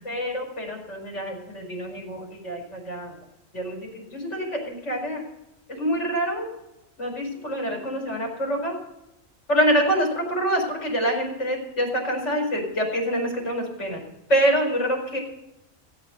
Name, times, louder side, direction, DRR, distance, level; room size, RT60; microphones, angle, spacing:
voice 1, 0.0-3.1 3.5-5.2 5.7-6.5 7.0-8.7 9.5-14.0 14.3-15.2, equal, 60° left, 0 dB, 4.9 m, -26 dB
17.0 x 8.1 x 8.0 m, 0.90 s
omnidirectional pair, 1.4 m